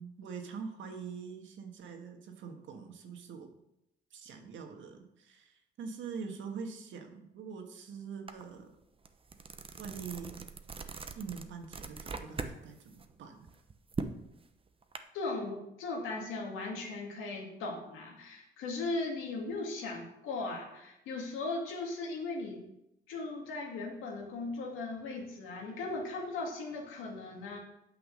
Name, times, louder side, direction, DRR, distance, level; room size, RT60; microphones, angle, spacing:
voice 1, 0.0-3.5 4.1-8.8 9.8-10.5 11.1-13.5, right 5 dB, 75° right, 4 dB, 1.6 m, -44 dB
sound 1, 8.3-8.4 8.8-12.6 12.9-15.0, right 4 dB, 25° right, 0.9 m, -41 dB
voice 2, 15.1-22.6 23.1-27.6, left 3 dB, 90° left, 0 dB, 2.3 m, -38 dB
8.6 x 5.9 x 6.5 m, 0.86 s
cardioid pair, 90°, 20 cm